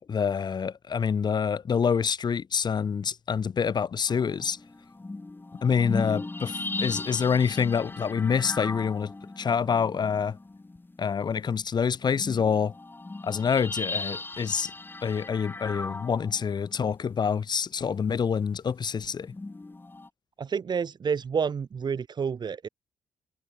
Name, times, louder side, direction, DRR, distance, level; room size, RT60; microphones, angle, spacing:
voice 1, 0.1-4.6 5.6-10.4 11.0-12.7 13.2-14.7 15.0-19.3, left 6 dB, 50° left, 3.0 m, -26 dB
sound 1, 4.1-11.1 11.6-11.7 12.0-16.9 19.2-20.1, left 2 dB, 20° left, 5.8 m, -37 dB
voice 2, 20.4-22.7, right 6 dB, 50° right, 7.1 m, -29 dB
supercardioid pair, 55°, 9 cm